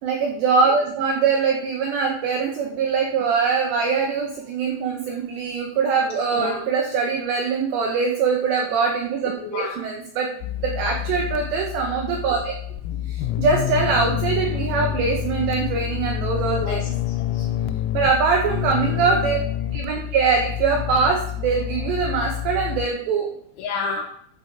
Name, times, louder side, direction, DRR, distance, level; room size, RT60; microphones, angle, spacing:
voice 1, 0.0-10.3 10.6-12.5 13.1-16.8 17.9-19.4 19.7-23.3, right 5 dB, 70° right, 0 dB, 3.0 m, -22 dB
voice 2, 6.3-6.7 9.4-9.8 16.6-17.5 23.6-24.0, left 4 dB, 75° left, 2 dB, 3.4 m, -30 dB
sound 1, 10.4-22.9, left 12 dB, 90° left, 3.5 m, -28 dB
13.5 x 6.9 x 4.7 m, 0.66 s
omnidirectional pair, 5.9 m